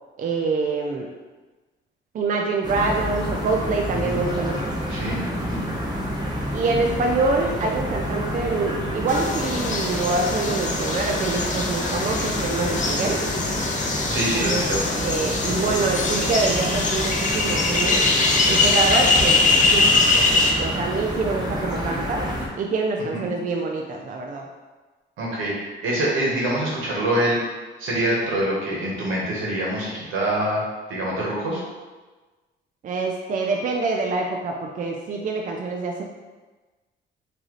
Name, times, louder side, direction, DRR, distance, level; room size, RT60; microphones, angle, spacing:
voice 1, 0.2-1.1 2.1-4.6 6.5-13.2 14.4-14.6 15.0-18.1 18.5-19.4 19.7-19.9 20.6-22.2 22.6-24.5 32.8-36.0, right 3 dB, 40° right, 1 dB, 0.4 m, -25 dB
sound 1, 2.6-22.5, equal, 20° right, 0.8 m, -29 dB
voice 2, 4.9-5.6 14.1-15.0 23.1-23.3 25.2-27.4 27.8-30.6 30.9-31.6, right 1 dB, 85° right, -4 dB, 1.2 m, -25 dB
sound 2, 9.1-20.5, left 3 dB, 40° left, 0.6 m, -22 dB
3.8 x 2.8 x 3.1 m, 1.3 s
cardioid pair, 90°, 20 cm